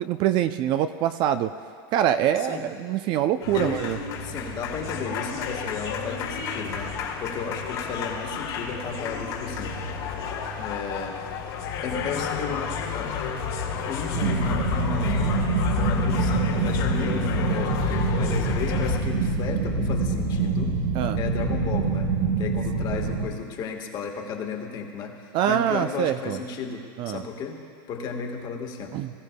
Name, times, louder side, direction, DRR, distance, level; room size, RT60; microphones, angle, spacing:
voice 1, 0.0-1.5 1.9-4.0 20.9-21.2 25.3-26.4 27.0-27.2 28.9-29.1, right 10 dB, 40° right, 10 dB, 0.4 m, -24 dB
sound 1, 3.4-19.0, left 6 dB, 80° left, 1.9 m, -31 dB
voice 2, 3.5-3.9 4.1-6.9 7.2-9.8 10.6-11.2 11.8-13.2 13.8-15.5 15.8-20.7 21.1-27.6 27.9-29.0, left 5 dB, 35° left, 3 dB, 1.4 m, -34 dB
sound 2, 14.1-23.3, right 3 dB, 85° right, 2.2 m, -25 dB
20.0 x 13.5 x 2.2 m, 2.3 s
supercardioid pair, 140°, 13 cm